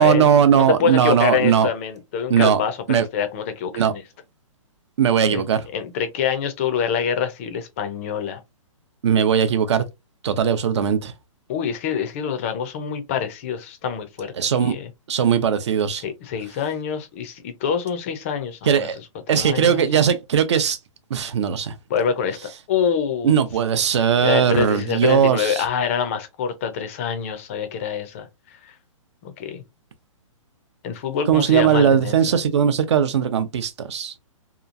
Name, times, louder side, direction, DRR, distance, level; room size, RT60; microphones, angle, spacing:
voice 1, 0.0-1.7 2.3-2.6 2.9-3.1 3.7-3.9 5.0-5.7 9.0-9.8 10.2-11.1 14.4-14.7 15.1-16.0 18.6-19.0 19.3-20.8 21.1-21.7 23.2-25.6 31.3-34.1, right 8 dB, 55° right, 0.5 m, -19 dB
voice 2, 0.5-4.0 5.3-5.4 5.7-8.4 11.5-14.3 14.6-14.9 16.0-18.9 19.4-19.8 21.9-23.3 24.2-28.3 28.6-28.7 29.2-29.6 30.8-32.1, left 7 dB, 25° left, 0.4 m, -25 dB
2.9 x 2.3 x 2.4 m
hypercardioid pair, 160°, 17 cm